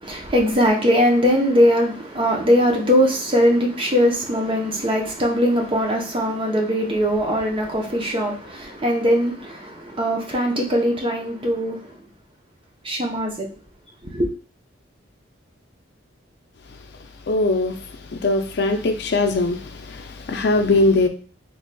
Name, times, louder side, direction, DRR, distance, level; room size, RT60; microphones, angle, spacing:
voice 1, 0.0-12.0 12.8-13.5 14.0-14.3, equal, 30° right, 0.7 m, -20 dB
voice 2, 17.3-21.1, left 2 dB, 60° left, 0.5 m, -21 dB
3.9 x 3.1 x 2.2 m
head